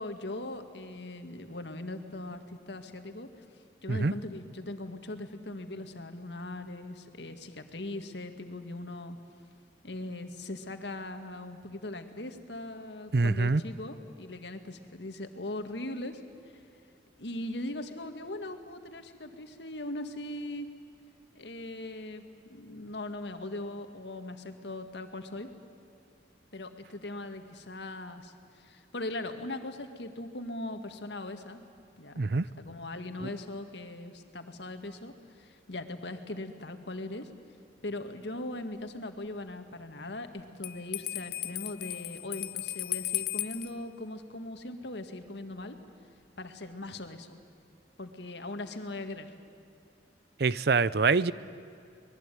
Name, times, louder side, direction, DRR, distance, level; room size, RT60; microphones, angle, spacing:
voice 1, 0.0-3.4 3.8-9.2 9.8-16.6 17.2-20.7 21.3-22.2 22.5-25.5 26.5-31.6 32.0-32.2 32.6-37.3 37.8-45.8 46.4-47.4 48.0-49.3, left 2 dB, 75° left, 7 dB, 1.9 m, -40 dB
voice 2, 13.1-13.6 32.2-32.4 33.2-33.3 50.4-51.3, right 4 dB, 60° right, 18 dB, 0.6 m, -25 dB
Bell, 40.6-43.7, left 16 dB, 55° left, 0.7 m, -35 dB
25.0 x 20.5 x 9.2 m, 2.4 s
head